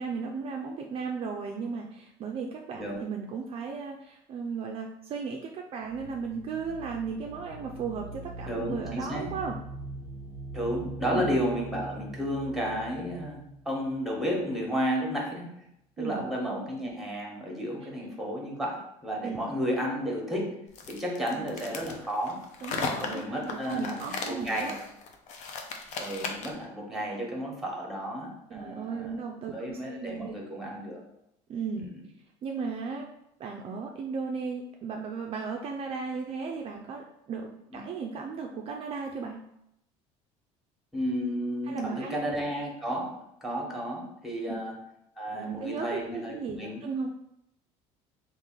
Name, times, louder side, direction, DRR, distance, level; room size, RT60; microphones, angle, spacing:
voice 1, 0.0-9.6 11.1-11.3 16.0-16.3 19.2-19.4 21.3-21.6 22.6-24.7 28.5-30.4 31.5-31.9 32.4-33.1 33.4-39.4 41.7-42.4 44.5-44.6 45.3-47.1, right 5 dB, 40° right, 1 dB, 0.4 m, -36 dB
sound 1, 5.8-14.5, right 2 dB, 85° left, 1.0 m, -42 dB
voice 2, 8.5-9.3 10.5-15.6 16.0-20.6 20.9-22.4 22.8-24.8 26.0-29.2 29.5-31.0 31.8-31.9 37.7-37.9 40.9-44.7 45.2-46.8, equal, ahead, -1 dB, 1.2 m, -32 dB
sound 2, 20.7-26.6, left 4 dB, 55° left, 0.6 m, -36 dB
3.2 x 2.5 x 3.7 m, 0.80 s
supercardioid pair, 95°, 15 cm